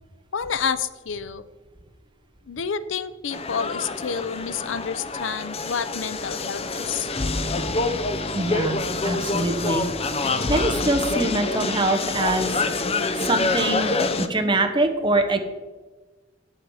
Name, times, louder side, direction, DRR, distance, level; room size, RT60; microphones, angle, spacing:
voice 1, 0.3-1.4 2.5-7.1, left 6 dB, 80° left, 14 dB, 0.5 m, -29 dB
sound 1, 3.3-14.3, left 3 dB, 30° left, 0.6 m, -26 dB
voice 2, 8.3-10.2 10.5-12.7 13.2-15.4, right 2 dB, 25° right, 5 dB, 1.0 m, -24 dB
9.4 x 8.0 x 4.8 m, 1.2 s
head